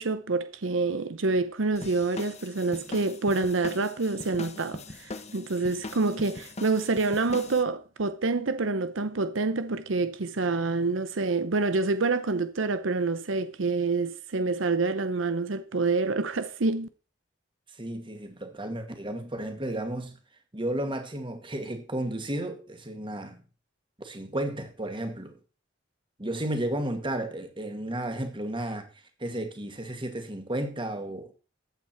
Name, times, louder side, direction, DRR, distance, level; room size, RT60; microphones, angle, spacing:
voice 1, 0.0-16.9, right 3 dB, 80° right, 0.8 m, -27 dB
sound 1, 1.8-7.6, left 2 dB, 35° left, 1.1 m, -41 dB
voice 2, 17.8-20.2 20.5-23.4 24.0-25.4 26.2-28.9 29.2-31.3, right 1 dB, 25° right, 2.2 m, -33 dB
14.5 x 8.5 x 4.5 m
head